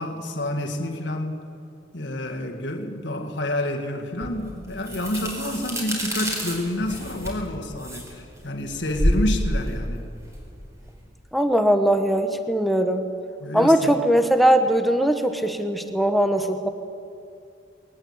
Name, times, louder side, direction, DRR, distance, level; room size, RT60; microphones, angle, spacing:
voice 1, 0.0-1.4 1.9-10.1 13.4-14.0, left 1 dB, 65° left, 3 dB, 1.9 m, -29 dB
sound 1, 4.2-11.0, equal, 15° right, 4.5 m, -28 dB
voice 2, 11.3-13.0 13.5-16.7, right 1 dB, ahead, 7 dB, 0.9 m, -20 dB
21.0 x 18.5 x 8.2 m, 2.5 s
head